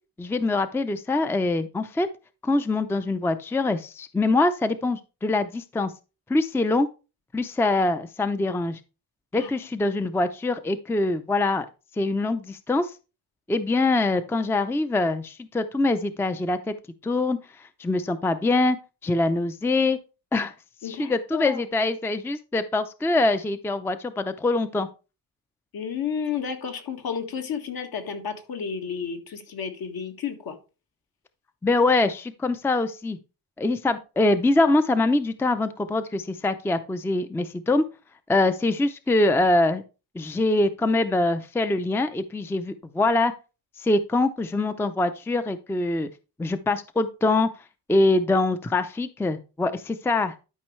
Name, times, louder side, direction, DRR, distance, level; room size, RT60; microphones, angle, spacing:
voice 1, 0.2-2.1 2.4-5.9 6.3-6.9 7.3-8.8 9.3-11.7 12.0-12.9 13.5-16.7 17.0-17.4 17.8-18.8 19.0-20.0 20.3-20.5 20.8-24.9 31.6-33.2 33.6-37.8 38.3-39.8 40.1-43.3 43.8-46.1 46.4-47.5 47.9-50.3, left 2 dB, 5° left, 11 dB, 0.4 m, -24 dB
voice 2, 20.8-21.6 25.7-30.6, left 7 dB, 65° left, 5 dB, 1.8 m, -32 dB
12.0 x 5.3 x 3.2 m, 0.31 s
cardioid pair, 125°, 39 cm